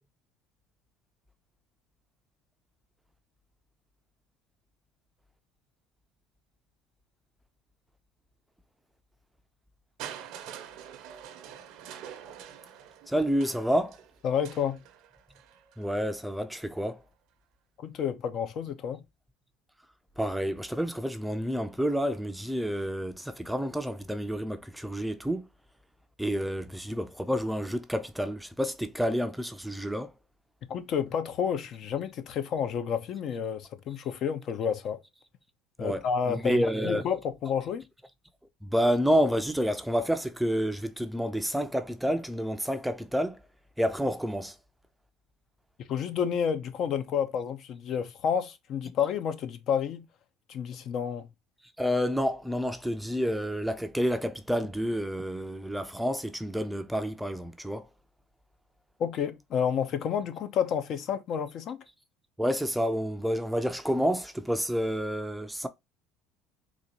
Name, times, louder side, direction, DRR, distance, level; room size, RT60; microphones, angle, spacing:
Crushing, 10.0-15.9 16.9-17.0, right 9 dB, 70° right, 0.7 m, -46 dB
voice 1, 13.1-14.0 15.8-17.0 20.2-25.5 26.2-30.1 35.8-37.0 38.6-43.4 43.8-44.5 51.8-57.9 62.4-65.7, equal, 5° right, 0.5 m, -29 dB
voice 2, 14.2-14.8 17.8-19.0 30.7-35.0 35.8-37.8 45.9-50.1 50.5-51.3 59.0-61.8, left 7 dB, 55° left, 0.6 m, -30 dB
4.0 x 2.4 x 2.9 m
supercardioid pair, 100°, 0 cm